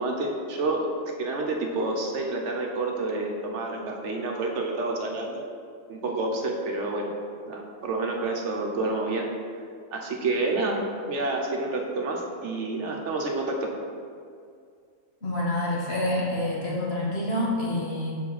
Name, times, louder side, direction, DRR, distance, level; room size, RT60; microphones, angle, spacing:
voice 1, 0.0-5.4 5.9-7.1 7.5-9.3 9.9-10.8 11.1-13.6, right 2 dB, 65° right, 1 dB, 1.1 m, -29 dB
voice 2, 15.2-18.2, left 1 dB, 50° left, -5 dB, 1.8 m, -27 dB
5.2 x 4.9 x 5.7 m, 2.3 s
omnidirectional pair, 1.3 m